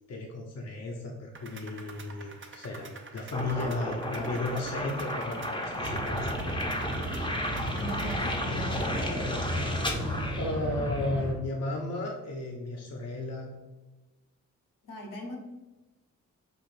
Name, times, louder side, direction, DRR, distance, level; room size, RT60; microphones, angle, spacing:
voice 1, 0.1-6.3 10.0-13.5, left 2 dB, 50° left, 0 dB, 0.7 m, -34 dB
sound 1, 1.3-8.2, right 4 dB, 35° right, 0.6 m, -48 dB
sound 2, 3.3-11.1, left 1 dB, 15° left, 0.7 m, -34 dB
sound 3, 5.8-11.3, equal, 60° right, 1.0 m, -33 dB
voice 2, 7.8-9.3 14.9-15.4, equal, 75° left, 0 dB, 0.9 m, -39 dB
4.9 x 2.4 x 2.5 m, 1.1 s
supercardioid pair, 45°, 33 cm